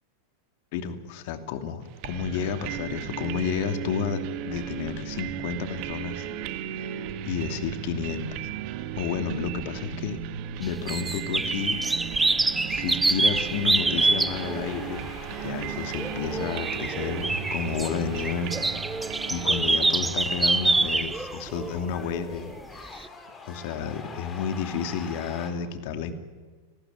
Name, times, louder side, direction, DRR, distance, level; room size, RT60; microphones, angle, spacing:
voice 1, 0.7-6.3 7.2-8.3 9.0-10.2 10.6-11.8 12.7-15.1 15.4-18.5 19.3-23.1 23.4-26.1, left 7 dB, 50° left, 8 dB, 2.7 m, -31 dB
sound 1, 2.0-20.7, right 11 dB, 45° right, 2.0 m, -36 dB
sound 2, 10.6-14.7 15.4-22.5 23.0-23.1, right 3 dB, 10° right, 0.9 m, -26 dB
sound 3, 11.6-25.5, left 4 dB, 20° left, 4.7 m, -44 dB
30.0 x 20.0 x 9.4 m, 1.5 s
figure-of-eight pair, 90°, 0 cm